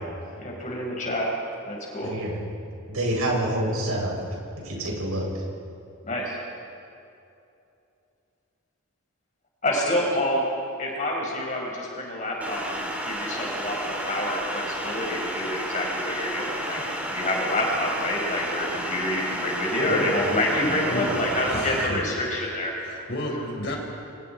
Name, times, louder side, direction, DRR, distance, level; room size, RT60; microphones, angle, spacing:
voice 1, 0.4-1.3 1.6-2.1 6.0-6.4 9.6-10.4 10.8-16.8 17.1-23.1, left 1 dB, 35° left, -2 dB, 5.1 m, -27 dB
voice 2, 2.0-2.4 2.9-4.1 4.6-5.4, right 1 dB, 80° right, -2 dB, 6.9 m, -27 dB
sound 1, 12.4-21.9, equal, 5° right, 3.3 m, -32 dB
voice 3, 18.3-18.9 19.2-19.6 19.8-22.0 22.8-23.8, equal, 50° left, 0 dB, 4.6 m, -34 dB
29.5 x 25.0 x 4.5 m, 2.7 s
head